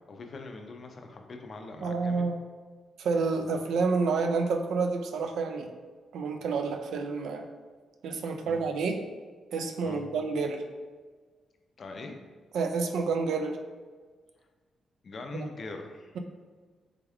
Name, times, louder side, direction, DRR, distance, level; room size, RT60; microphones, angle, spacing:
voice 1, 0.1-2.2 8.4-8.6 9.8-10.1 11.8-12.2 15.0-16.1, left 3 dB, 40° left, 4 dB, 0.4 m, -42 dB
voice 2, 1.8-2.4 3.0-5.7 6.1-7.5 8.0-9.0 9.5-10.6 12.5-13.6 15.3-15.5, right 4 dB, 80° right, 5 dB, 0.3 m, -29 dB
3.4 x 2.3 x 3.4 m, 1.4 s
cardioid pair, 140°, 0 cm